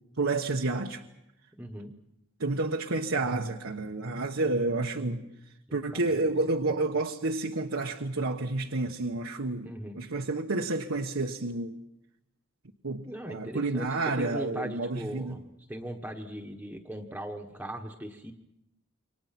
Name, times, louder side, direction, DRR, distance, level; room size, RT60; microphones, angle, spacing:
voice 1, 0.2-1.0 2.4-5.2 5.7-9.7 9.9-11.8 12.8-15.4, right 2 dB, 80° right, 1.2 m, -30 dB
voice 2, 1.6-1.9 5.7-6.3 6.6-6.8 9.6-10.0 13.0-13.9 14.2-18.3, right 1 dB, 10° right, 1.3 m, -39 dB
28.5 x 24.0 x 5.9 m
head